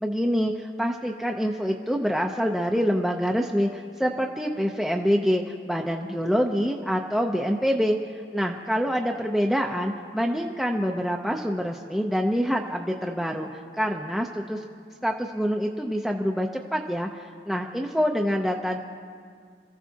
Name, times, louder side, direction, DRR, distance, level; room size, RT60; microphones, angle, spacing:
voice 1, 0.0-5.4 5.7-8.0 8.3-13.5 13.8-14.6 15.0-17.1 17.5-18.8, equal, ahead, 0 dB, 0.5 m, -26 dB
27.5 x 14.5 x 2.8 m, 2.1 s
head